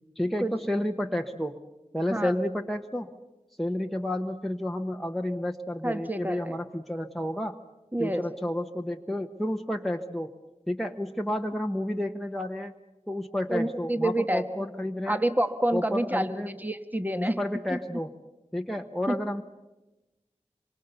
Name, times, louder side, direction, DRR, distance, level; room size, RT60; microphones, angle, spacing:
voice 1, 0.2-1.6 1.9-3.1 3.6-7.6 8.0-10.3 10.7-12.7 13.1-15.2 15.7-16.5 17.2-18.1 18.5-19.4, left 1 dB, ahead, 3 dB, 1.0 m, -31 dB
voice 2, 5.8-6.5 7.9-8.3 13.5-14.4 15.1-17.4 17.7-17.8 19.1-19.2, right 1 dB, 15° right, 8 dB, 1.4 m, -28 dB
26.0 x 23.5 x 6.9 m, 1.1 s
wide cardioid pair, 55°, 12 cm